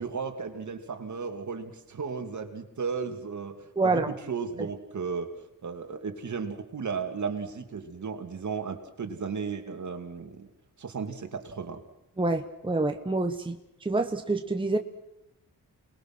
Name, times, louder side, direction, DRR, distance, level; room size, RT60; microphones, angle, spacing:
voice 1, 0.0-5.3 5.6-10.5 10.8-11.8, right 5 dB, 55° right, 6 dB, 2.7 m, -35 dB
voice 2, 3.8-4.1 4.6-4.7 12.2-14.8, right 2 dB, 15° right, 6 dB, 1.2 m, -27 dB
29.0 x 20.5 x 6.2 m, 0.88 s
wide cardioid pair, 140°, 36 cm